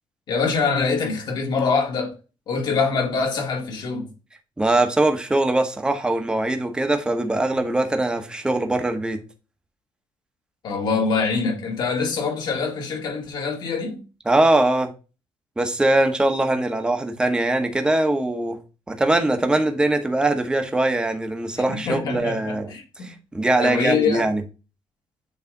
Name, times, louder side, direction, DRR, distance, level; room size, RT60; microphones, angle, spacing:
voice 1, 0.3-2.2 2.5-4.1 10.6-14.0 21.7-23.1 23.6-24.3, left 5 dB, 55° left, 2.1 m, -24 dB
voice 2, 4.6-9.2 14.3-14.9 15.6-18.6 18.9-22.7 23.0-24.4, right 2 dB, 10° right, 1.0 m, -21 dB
8.4 x 3.2 x 3.9 m
cardioid pair, 150°, 9 cm